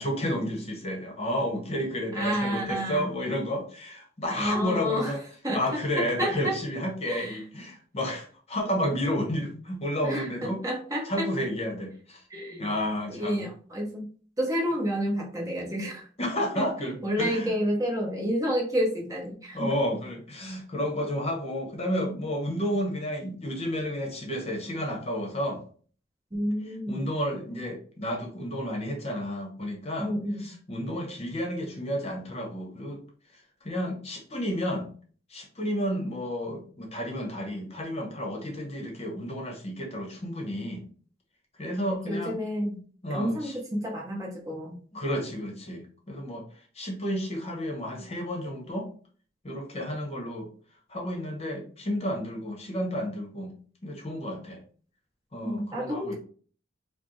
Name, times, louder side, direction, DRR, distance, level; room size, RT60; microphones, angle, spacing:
voice 1, 0.0-5.2 5.5-10.6 11.0-12.2 12.6-13.5 16.2-17.5 19.5-25.6 26.7-33.0 33.6-34.9 35.3-40.8 41.6-42.4 43.0-43.6 44.9-46.4 46.7-48.9 49.4-50.5 50.9-53.5 53.8-54.6 55.3-56.1, equal, 30° left, 1 dB, 1.0 m, -31 dB
voice 2, 2.1-3.1 4.3-5.1 5.4-6.5 7.1-7.4 10.0-11.3 12.3-12.7 13.1-14.1 14.4-16.1 16.6-19.7 26.3-27.1 30.0-30.4 42.1-42.8 43.1-44.8 55.4-56.1, equal, 15° right, -1 dB, 0.9 m, -30 dB
4.9 x 2.2 x 3.1 m, 0.42 s
head